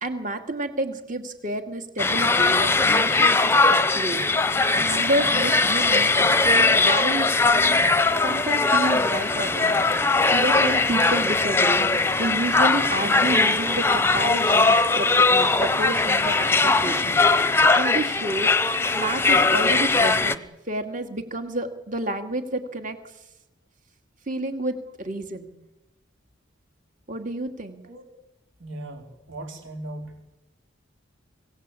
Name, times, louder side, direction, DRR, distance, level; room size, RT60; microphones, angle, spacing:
voice 1, 0.0-4.2 4.7-7.8 8.2-11.9 12.2-16.5 16.8-17.2 17.7-18.5 18.9-20.4 20.7-23.0 24.3-25.5 27.1-27.8, right 1 dB, 40° right, 6 dB, 2.5 m, -30 dB
sound 1, 2.0-20.4, left 3 dB, 10° left, 0.8 m, -20 dB
voice 2, 28.6-30.1, right 1 dB, 75° right, 3 dB, 4.9 m, -38 dB
26.0 x 17.0 x 8.6 m, 0.92 s
head